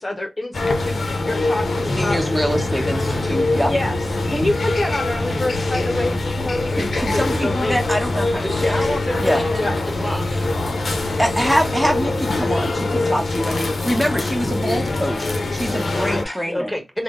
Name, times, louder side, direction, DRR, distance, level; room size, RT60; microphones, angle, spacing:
voice 1, 0.0-2.2 3.6-4.0 4.3-6.8 7.1-7.8 9.6-9.7 16.2-16.4, left 2 dB, 40° left, 0.7 m, -26 dB
sound 1, 0.5-16.2, left 2 dB, 75° left, 0.6 m, -23 dB
voice 2, 2.0-3.7 6.8-8.8 9.2-9.4 11.2-16.7, equal, 10° right, 1.2 m, -24 dB
sound 2, 2.3-12.7, right 2 dB, 85° right, 0.4 m, -35 dB
voice 3, 8.4-9.7 10.0-10.5 16.0-17.0, left 1 dB, 5° left, 1.4 m, -28 dB
3.5 x 2.2 x 3.6 m
cardioid pair, 45°, 0 cm